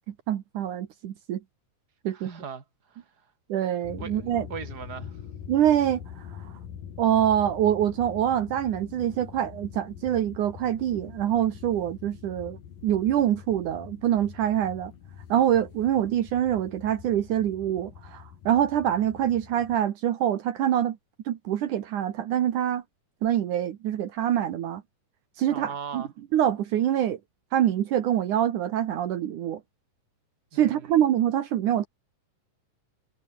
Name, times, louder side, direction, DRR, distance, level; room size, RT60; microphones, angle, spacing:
voice 1, 0.3-1.4 2.0-2.3 3.5-4.5 5.5-6.0 7.0-12.6 12.8-14.9 15.3-21.0 21.3-22.8 23.2-24.8 25.4-26.0 26.3-27.2 27.5-29.6 30.5-31.9, right 10 dB, 70° right, 2.8 m, -25 dB
voice 2, 2.1-3.0 4.0-5.2 25.5-26.1 30.5-30.9, right 6 dB, 30° right, 3.1 m, -39 dB
sound 1, 3.8-19.8, left 8 dB, 90° left, 4.1 m, -44 dB
omnidirectional pair, 3.8 m